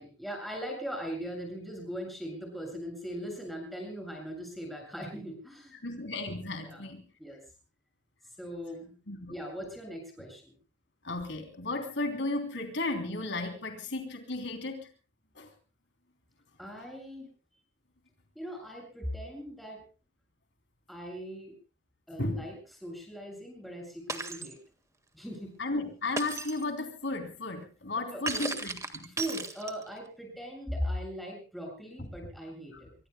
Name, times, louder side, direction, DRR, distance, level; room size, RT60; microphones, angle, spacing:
voice 1, 0.0-5.8 6.6-6.8 7.2-7.4 8.4-8.9 9.3-10.5 16.6-17.3 18.4-19.8 20.9-21.6 22.1-22.5 22.8-24.6 25.1-25.5 27.9-28.6 29.1-32.9, equal, ahead, 1 dB, 7.4 m, -39 dB
voice 2, 5.7-7.0 9.1-9.4 11.0-14.9 15.4-15.5 22.2-22.4 25.6-29.1 32.7-32.8, left 2 dB, 70° left, 5 dB, 3.3 m, -34 dB
Shatter, 24.1-24.5 26.2-26.6 28.3-30.0, right 3 dB, 15° right, 1.7 m, -35 dB
26.5 x 23.5 x 2.3 m, 0.35 s
head